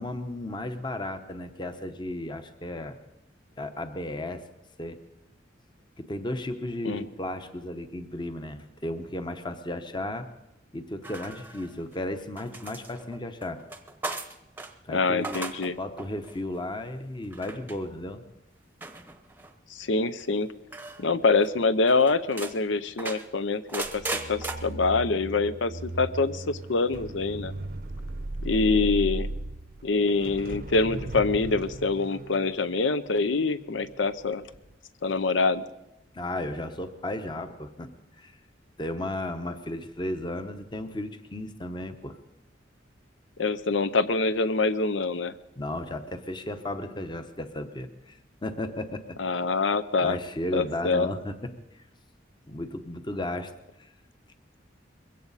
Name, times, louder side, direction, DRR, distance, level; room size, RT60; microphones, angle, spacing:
voice 1, 0.0-3.0 3.6-4.4 4.8-5.0 6.0-10.3 10.7-13.6 14.8-15.4 15.8-18.2 36.1-37.9 38.2-38.3 38.8-42.2 45.6-49.2 50.0-51.8 52.5-53.5 53.8-53.9, left 1 dB, 25° left, 9 dB, 0.8 m, -34 dB
sound 1, 11.0-11.9 12.4-14.7 15.1-15.7 16.0-16.4 17.3-17.8 18.8-19.5 20.7-21.0 21.4-21.5 21.9-22.5 23.0-24.5, right 2 dB, 10° right, 0.8 m, -37 dB
voice 2, 14.9-15.8 19.7-20.5 21.0-27.5 28.4-29.3 29.8-34.4 35.0-35.7 43.4-45.3 49.2-50.2 50.5-51.1, left 3 dB, 85° left, 14 dB, 0.7 m, -25 dB
sound 2, 23.8-34.1 34.5-34.7, right 2 dB, 50° right, 0.7 m, -37 dB
21.5 x 16.0 x 4.1 m, 0.92 s
head